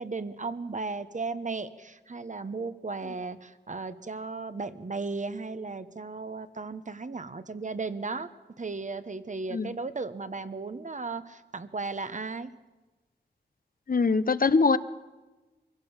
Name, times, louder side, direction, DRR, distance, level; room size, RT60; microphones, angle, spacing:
voice 1, 0.0-8.3 8.6-12.5, right 3 dB, 45° right, 12 dB, 1.1 m, -35 dB
voice 2, 13.9-14.8, left 4 dB, 55° left, 14 dB, 0.8 m, -22 dB
23.5 x 16.5 x 7.3 m, 1.2 s
wide cardioid pair, 65°, 18 cm